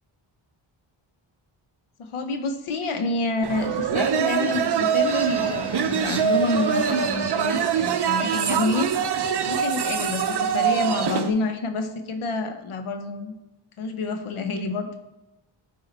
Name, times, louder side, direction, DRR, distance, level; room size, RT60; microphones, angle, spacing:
voice 1, 2.0-8.9 9.5-13.3 13.8-15.0, left 3 dB, 85° left, 7 dB, 0.9 m, -28 dB
sound 1, 3.4-11.3, right 7 dB, 55° right, 0.7 m, -24 dB
sound 2, 5.0-11.4, equal, 10° left, 0.8 m, -43 dB
10.0 x 4.8 x 4.0 m, 0.98 s
wide cardioid pair, 110°, 49 cm